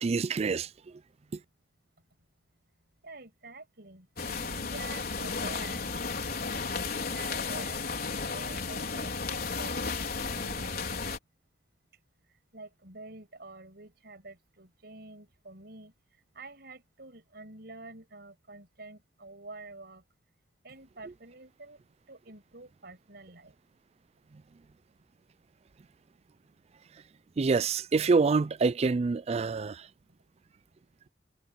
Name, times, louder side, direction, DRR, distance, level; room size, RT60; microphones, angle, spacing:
voice 1, 0.0-0.7 27.4-29.8, right 4 dB, 35° right, 0.4 m, -26 dB
voice 2, 3.0-5.9 6.7-7.8 8.3-10.8 12.5-15.9 16.3-20.0 20.6-21.8 22.1-23.5, right 3 dB, 60° right, 6.3 m, -48 dB
sound 1, 4.2-11.2, left 4 dB, 55° left, 4.5 m, -34 dB
head